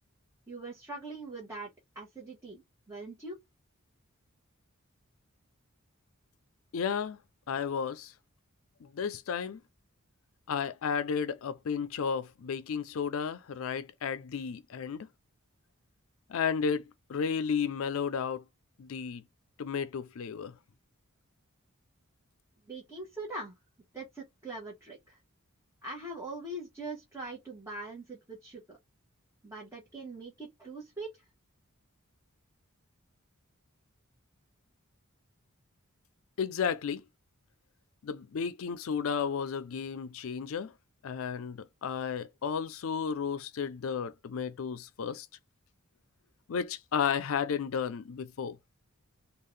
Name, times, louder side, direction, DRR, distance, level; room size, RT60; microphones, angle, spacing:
voice 1, 0.5-1.7 1.9-3.4 22.7-23.6 23.9-25.2 25.8-28.8 29.4-31.3, right 2 dB, 15° right, 1.2 m, -42 dB
voice 2, 6.7-7.2 7.5-8.1 8.8-9.6 10.5-15.1 16.3-16.8 17.1-18.4 18.8-19.2 19.6-20.5 36.4-37.0 38.0-40.7 41.0-45.3 46.5-48.6, left 6 dB, 70° left, 0.4 m, -33 dB
3.6 x 2.4 x 3.2 m
head